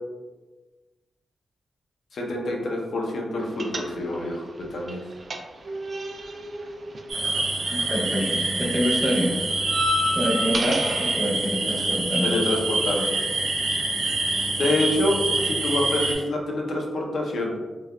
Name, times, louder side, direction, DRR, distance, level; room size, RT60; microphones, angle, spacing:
voice 1, 2.1-4.4 4.7-5.0 12.2-13.2 14.5-17.6, left 1 dB, 70° left, -1 dB, 0.6 m, -26 dB
sound 1, 3.6-4.4 4.6-8.0 8.3-11.2, equal, 40° right, 0.3 m, -30 dB
sound 2, 7.1-16.2, right 2 dB, 90° right, 0.6 m, -26 dB
voice 2, 7.7-9.4 10.1-12.3, equal, 20° right, -4 dB, 0.7 m, -26 dB
3.1 x 2.4 x 2.2 m, 1.2 s
wide cardioid pair, 115°, 0 cm